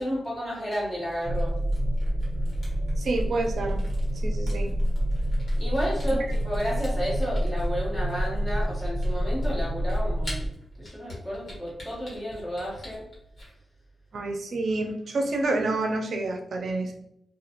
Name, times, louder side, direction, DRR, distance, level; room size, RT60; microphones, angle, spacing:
voice 1, 0.0-1.5 5.6-10.5 10.8-13.0, equal, 20° left, -7 dB, 1.4 m, -31 dB
Camera, 1.0-13.5, left 1 dB, 55° left, 1.2 m, -45 dB
sound 1, 1.2-10.5, equal, 30° right, 1.0 m, -27 dB
voice 2, 3.0-3.8 4.2-4.7 6.1-6.2 14.1-16.9, right 2 dB, 65° right, 3 dB, 0.5 m, -28 dB
2.4 x 2.3 x 2.8 m, 0.77 s
wide cardioid pair, 100°, 0 cm